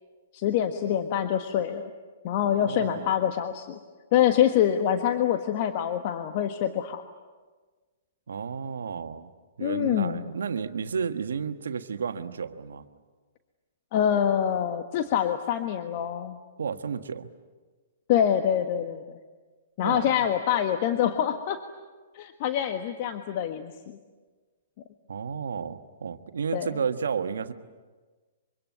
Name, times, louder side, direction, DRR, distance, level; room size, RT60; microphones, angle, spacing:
voice 1, 0.3-1.9 2.2-3.8 4.1-7.0 9.6-10.3 13.9-16.4 18.1-19.2 19.8-21.6 22.1-23.7 26.5-26.7, left 10 dB, 50° left, 7 dB, 1.5 m, -25 dB
voice 2, 2.4-3.1 8.3-9.3 9.6-12.8 16.6-17.3 19.8-20.1 25.1-27.5, right 6 dB, 80° right, 9 dB, 1.4 m, -32 dB
25.0 x 24.5 x 9.4 m, 1.4 s
hypercardioid pair, 130°, 0 cm